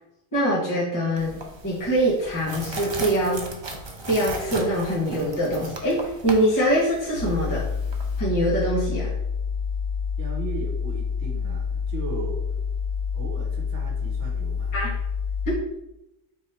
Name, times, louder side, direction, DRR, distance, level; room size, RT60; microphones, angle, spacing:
voice 1, 0.3-3.4 4.1-7.7 8.2-9.1 14.7-14.9 15.5-15.6, right 1 dB, 15° left, -8 dB, 1.2 m, -23 dB
sound 1, 1.2-8.2, right 2 dB, 40° right, 0.4 m, -37 dB
sound 2, 7.1-15.6, left 6 dB, 80° left, 1.9 m, -28 dB
voice 2, 10.2-12.4 13.1-14.7, right 4 dB, 70° right, 0 dB, 1.2 m, -36 dB
3.7 x 3.0 x 4.2 m, 0.92 s
omnidirectional pair, 1.2 m